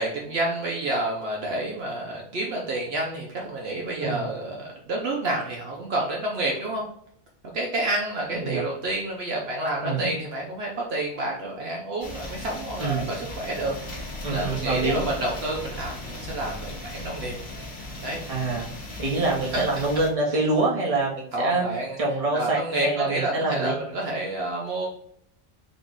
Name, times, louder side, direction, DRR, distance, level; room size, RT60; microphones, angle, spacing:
voice 1, 0.0-6.8 7.5-17.3 18.0-18.2 19.5-19.6 21.3-22.0 22.3-24.9, right 1 dB, 65° right, -2 dB, 0.9 m, -29 dB
sound 1, 12.0-20.1, left 2 dB, 55° left, 1.3 m, -37 dB
voice 2, 12.8-13.1 14.2-15.0 18.3-21.6 22.0-23.8, right 3 dB, 30° right, -3 dB, 1.0 m, -26 dB
3.9 x 2.3 x 3.7 m, 0.68 s
omnidirectional pair, 1.2 m